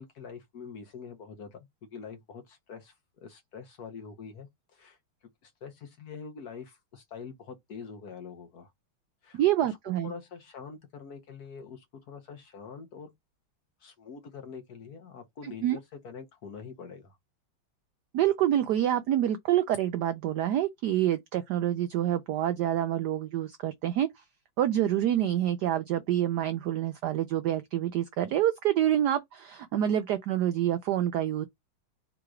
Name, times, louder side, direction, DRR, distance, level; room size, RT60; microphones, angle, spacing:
voice 1, 0.0-5.0 5.4-8.7 9.2-9.8 10.0-13.1 13.8-17.2, left 6 dB, 60° left, 1.1 m, -45 dB
voice 2, 9.3-10.1 15.4-15.8 18.1-24.2 24.6-31.5, right 12 dB, 85° right, 0.9 m, -27 dB
3.8 x 2.9 x 4.7 m
omnidirectional pair, 2.3 m